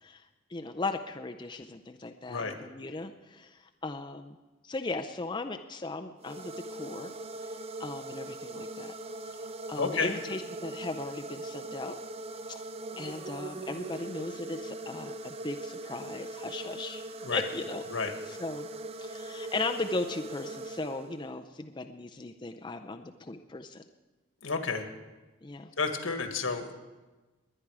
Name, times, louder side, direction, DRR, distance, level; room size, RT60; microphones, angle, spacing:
voice 1, 0.5-4.4 4.6-7.1 7.5-7.6 7.8-8.9 9.3-9.4 9.7-12.0 12.5-12.6 13.0-17.0 17.3-17.8 18.3-18.7 19.0-23.8 25.4-25.7, left 3 dB, 20° left, 5 dB, 0.5 m, -37 dB
sound 1, 6.2-21.4, right 2 dB, 30° right, 0.5 m, -41 dB
voice 2, 9.8-10.1 17.2-17.4 17.9-18.1 24.4-24.9 25.8-26.7, left 4 dB, 80° left, 5 dB, 1.7 m, -30 dB
21.0 x 10.0 x 4.8 m, 1.2 s
head